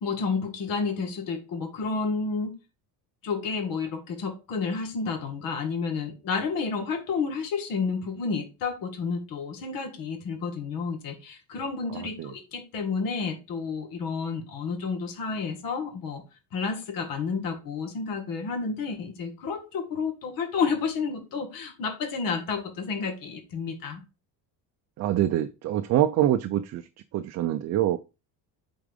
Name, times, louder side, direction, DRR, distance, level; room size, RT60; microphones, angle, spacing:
voice 1, 0.0-2.5 3.2-16.2 16.5-24.0, left 5 dB, 55° left, 2.0 m, -30 dB
voice 2, 25.0-26.8 27.1-28.0, right 12 dB, 40° right, 0.5 m, -25 dB
8.5 x 4.6 x 3.6 m
cardioid pair, 175°, 41 cm